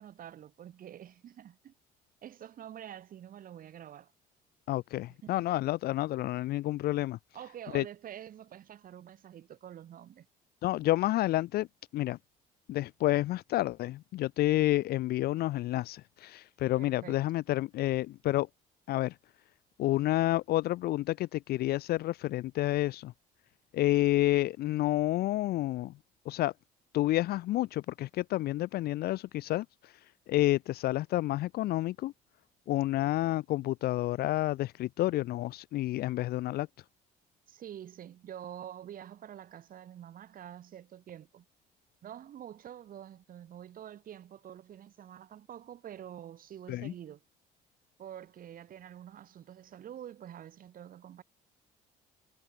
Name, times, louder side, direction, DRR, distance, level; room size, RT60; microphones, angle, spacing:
voice 1, 0.0-1.7 2.2-4.1 5.1-5.6 7.3-10.3 16.7-17.2 37.5-41.5 42.0-47.2 48.0-51.2, right 10 dB, 55° right, 7.3 m, -47 dB
voice 2, 4.7-7.2 7.7-7.8 10.6-11.7 11.9-12.2 12.7-18.5 18.9-19.2 19.8-23.1 23.7-25.9 26.3-26.5 26.9-29.9 30.3-32.1 32.7-36.7 46.7-46.9, left 16 dB, 65° left, 0.6 m, -29 dB
cardioid pair, 110°, 17 cm